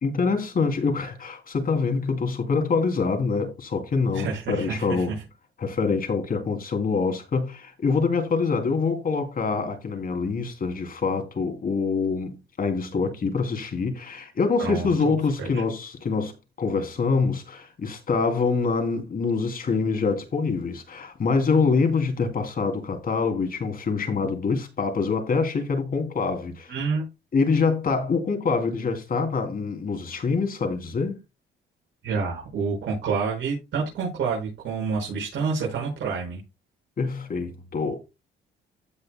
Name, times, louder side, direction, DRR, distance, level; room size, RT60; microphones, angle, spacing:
voice 1, 0.0-5.1 5.6-16.3 16.6-26.7 27.3-31.2 37.0-38.0, left 4 dB, 45° left, 3.1 m, -25 dB
voice 2, 4.1-5.0 14.6-15.1 15.4-15.6 26.7-27.0 32.0-36.4, right 5 dB, 70° right, 5.7 m, -28 dB
15.5 x 6.4 x 2.3 m
cardioid pair, 90°, 20 cm